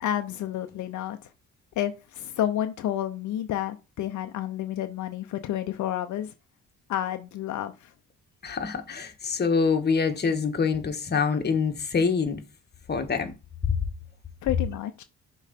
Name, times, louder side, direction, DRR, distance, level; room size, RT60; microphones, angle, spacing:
voice 1, 0.0-1.3 1.8-6.3 6.9-7.9 14.4-15.0, left 11 dB, 75° left, 0.6 m, -30 dB
voice 2, 8.4-12.4 12.9-13.3, left 5 dB, 35° left, 1.3 m, -25 dB
6.5 x 3.2 x 5.1 m
cardioid pair, 90°, 30 cm